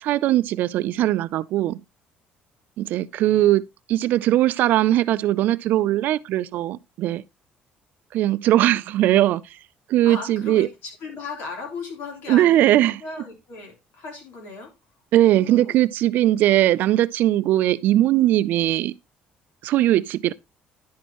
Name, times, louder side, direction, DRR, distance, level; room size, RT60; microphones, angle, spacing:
voice 1, 0.0-1.8 2.8-7.2 8.1-9.4 9.9-10.7 12.3-13.0 15.1-18.9 19.6-20.3, right 14 dB, 60° right, 0.4 m, -20 dB
voice 2, 3.2-3.5 10.0-14.7 15.2-15.8, left 4 dB, 75° left, 3.2 m, -37 dB
10.0 x 6.2 x 2.9 m
cardioid pair, 165°, 3 cm